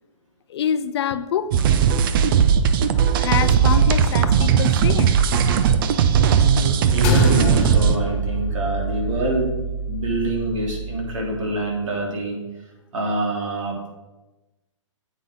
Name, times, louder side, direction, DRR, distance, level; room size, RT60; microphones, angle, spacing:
voice 1, 0.5-1.5 3.2-5.1, left 8 dB, 55° left, 13 dB, 0.6 m, -25 dB
sound 1, 1.5-8.0, right 7 dB, 45° right, 0.6 m, -18 dB
voice 2, 6.4-9.6 9.9-12.4 12.9-13.9, right 2 dB, 75° right, -1 dB, 3.2 m, -25 dB
sound 2, 7.0-11.6, equal, 35° left, 1.4 m, -26 dB
9.1 x 8.2 x 3.8 m, 1.1 s
hypercardioid pair, 135°, 17 cm